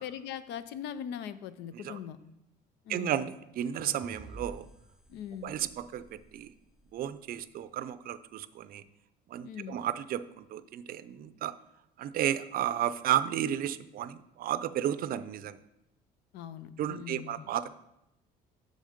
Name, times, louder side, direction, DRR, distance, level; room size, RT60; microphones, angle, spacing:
voice 1, 0.0-2.2 2.8-3.2 5.1-5.5 9.4-9.8 16.3-17.5, left 9 dB, 85° left, 14 dB, 0.5 m, -41 dB
voice 2, 2.9-4.7 5.4-6.5 6.9-8.8 9.3-11.5 12.0-15.6 16.8-17.7, right 11 dB, 60° right, 14 dB, 0.5 m, -33 dB
sound 1, 3.8-7.0, right 1 dB, 5° right, 0.4 m, -51 dB
6.5 x 6.5 x 5.1 m, 0.87 s
cardioid pair, 110°, 17 cm